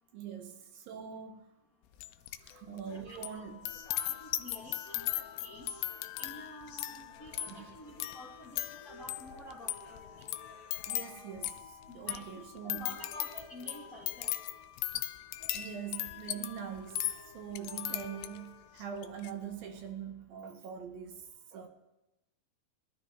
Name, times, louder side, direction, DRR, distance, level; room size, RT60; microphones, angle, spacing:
voice 1, 0.1-1.4 2.4-3.8 7.5-7.7 10.9-11.6 11.9-12.9 15.5-17.1 17.3-21.2 21.5-21.7, right 8 dB, 75° right, 2.7 m, -43 dB
sound 1, 2.0-2.5 2.8-18.5 19.0-19.3, left 14 dB, 80° left, 2.2 m, -38 dB
voice 2, 2.8-3.2 3.9-5.7 6.2-10.3 11.9-14.3, equal, 35° left, 1.4 m, -50 dB
sound 2, 2.9-18.9, left 3 dB, 65° left, 2.6 m, -57 dB
21.5 x 12.5 x 3.0 m
omnidirectional pair, 4.4 m